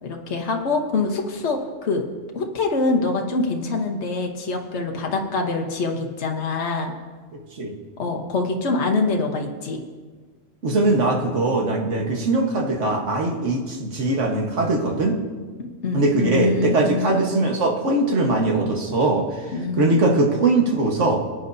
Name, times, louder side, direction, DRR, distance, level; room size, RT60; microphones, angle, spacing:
voice 1, 0.0-2.0 2.3-6.9 8.0-9.8 15.6-17.2 19.5-20.0, left 3 dB, 65° left, 2 dB, 1.4 m, -25 dB
voice 2, 7.3-7.7 10.6-15.2 15.9-19.5 19.8-21.2, right 2 dB, 70° right, 1 dB, 1.7 m, -21 dB
20.0 x 9.6 x 2.7 m, 1.4 s
omnidirectional pair, 1.3 m